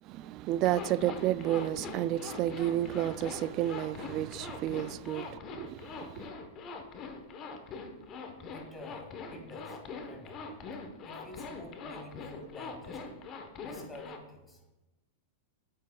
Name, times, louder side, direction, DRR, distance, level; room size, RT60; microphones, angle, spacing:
voice 1, 0.0-6.3, right 13 dB, 45° right, 0.3 m, -31 dB
Zipper (clothing), 0.6-14.2, left 4 dB, 35° left, 1.1 m, -43 dB
voice 2, 8.5-9.8 10.0-10.4 11.0-13.0 13.6-14.6, left 1 dB, 15° left, 2.2 m, -48 dB
9.5 x 8.3 x 2.3 m
hypercardioid pair, 110°, 0 cm